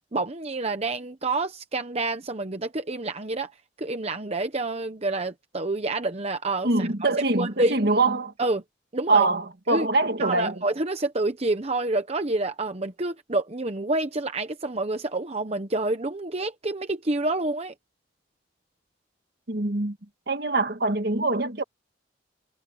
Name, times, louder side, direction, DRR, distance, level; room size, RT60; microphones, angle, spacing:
voice 1, 0.1-3.5 3.8-7.8 8.4-8.6 8.9-9.3 9.7-9.9 10.2-17.7, right 2 dB, 35° right, 0.9 m, -28 dB
voice 2, 6.6-8.3 9.1-10.6 19.5-20.0 20.3-21.6, right 3 dB, 55° right, 1.7 m, -24 dB
head